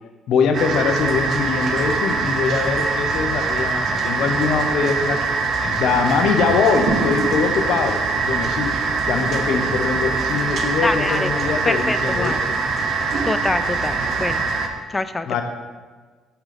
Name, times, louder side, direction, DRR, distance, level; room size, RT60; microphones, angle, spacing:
voice 1, 0.0-5.2 5.6-8.7 9.1-12.6 15.3-15.4, left 5 dB, 70° left, 6 dB, 0.7 m, -22 dB
sound 1, 0.5-14.7, right 4 dB, 50° right, 0.7 m, -23 dB
sound 2, 6.9-12.7, right 2 dB, 85° right, 2.1 m, -32 dB
voice 2, 10.8-11.3 11.6-12.4 13.2-14.4 14.9-15.4, left 3 dB, 20° left, 12 dB, 0.3 m, -25 dB
7.1 x 3.8 x 5.1 m, 1.4 s
cardioid pair, 105°, 0 cm